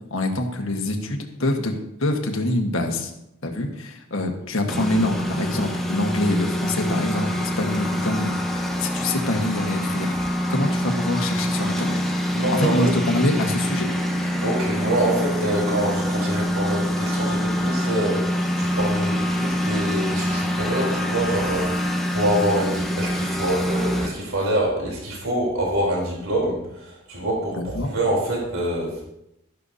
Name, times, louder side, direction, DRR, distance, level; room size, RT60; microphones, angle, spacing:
voice 1, 0.1-1.7 2.0-3.1 3.4-12.0 12.5-13.9 14.2-14.4 27.5-27.9, left 1 dB, 60° left, 3 dB, 1.5 m, -25 dB
Engine, 4.7-24.1, equal, ahead, 1.1 m, -25 dB
voice 2, 12.3-12.8 14.4-29.0, right 1 dB, 70° right, -3 dB, 3.6 m, -25 dB
13.0 x 11.5 x 2.8 m, 0.85 s
head